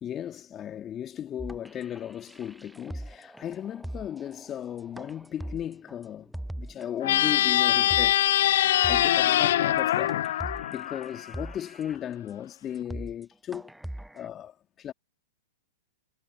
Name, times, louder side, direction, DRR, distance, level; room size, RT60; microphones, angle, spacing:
voice 1, 0.0-6.3 6.6-8.5 8.8-10.2 10.7-13.7 14.1-14.9, left 10 dB, 25° left, 2.3 m, -36 dB
sound 1, 1.4-6.9 7.3-7.4 7.7-8.2 8.5-8.6 8.8-9.3 9.8-9.9 10.1-12.0 12.4-12.5 12.8-13.2 13.5-14.3, right 1 dB, ahead, 0.8 m, -41 dB
sound 2, 7.0-11.5, left 13 dB, 60° left, 0.3 m, -23 dB
figure-of-eight pair, 105°, 0 cm